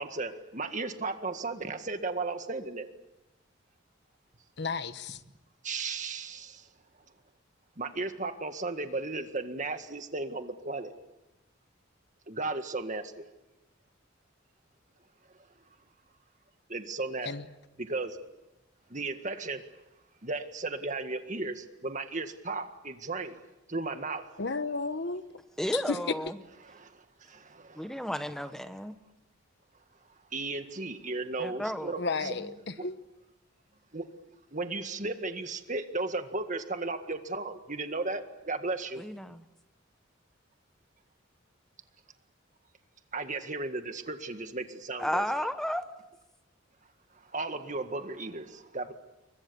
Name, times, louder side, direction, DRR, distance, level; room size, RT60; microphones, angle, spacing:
voice 1, 0.0-2.9 5.6-6.7 7.8-10.9 12.3-13.2 16.7-17.3 17.8-18.2 18.9-19.7 20.2-23.4 23.7-24.3 26.6-26.8 27.5-28.1 30.3-32.4 32.8-32.9 33.9-34.1 34.5-39.0 43.1-45.5 47.2-48.9, right 3 dB, 40° right, 8 dB, 1.8 m, -35 dB
voice 2, 4.6-5.2 17.3-17.4 24.4-25.2 25.7-26.0 32.0-32.5 32.8-33.0, left 4 dB, 55° left, 12 dB, 1.1 m, -32 dB
voice 3, 25.6-26.4 27.8-28.9 31.4-31.9 32.2-32.5 39.0-39.4 45.0-45.8, equal, ahead, 9 dB, 1.1 m, -33 dB
30.0 x 23.0 x 7.1 m, 1.0 s
head